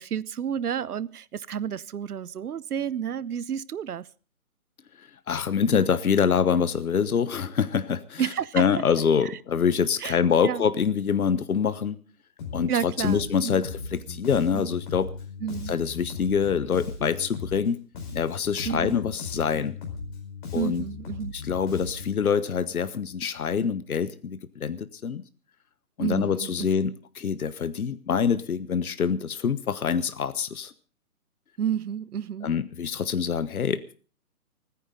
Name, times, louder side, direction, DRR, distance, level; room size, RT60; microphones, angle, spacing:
voice 1, 0.0-4.1 8.2-8.6 9.2-9.4 10.0-10.6 12.7-13.6 14.5-14.7 15.4-15.8 18.7-19.0 20.5-21.3 26.0-26.7 31.6-32.5, right 8 dB, 90° right, 0.7 m, -31 dB
voice 2, 5.0-8.3 8.5-12.0 12.5-15.1 15.7-17.8 18.1-19.8 20.5-20.8 21.3-25.2 26.0-30.7 32.4-33.9, left 7 dB, 75° left, 1.2 m, -25 dB
Bass guitar, 12.4-12.7 13.0-17.7 17.9-22.3, left 4 dB, 35° left, 4.9 m, -38 dB
29.5 x 10.0 x 3.8 m
hypercardioid pair, 160°, 44 cm